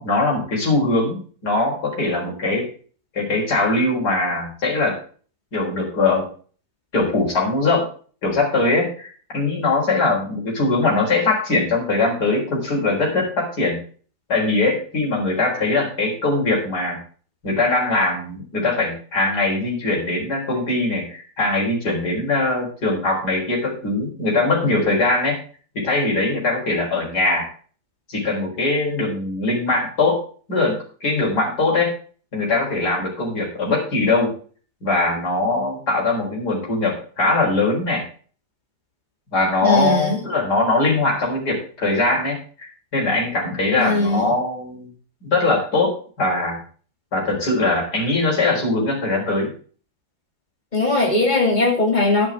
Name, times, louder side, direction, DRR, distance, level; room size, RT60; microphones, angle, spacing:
voice 1, 0.0-2.7 3.1-5.0 5.5-6.3 6.9-7.9 8.2-13.8 14.3-17.0 17.4-25.4 25.7-27.5 28.1-30.2 30.5-31.9 32.3-34.3 34.8-38.0 39.3-44.9 45.2-46.6 47.1-49.5, left 2 dB, 55° left, -3 dB, 4.8 m, -21 dB
voice 2, 39.6-40.2 43.8-44.3 50.7-52.3, left 2 dB, 25° left, 0 dB, 2.7 m, -19 dB
11.0 x 9.9 x 3.6 m, 0.41 s
omnidirectional pair, 2.0 m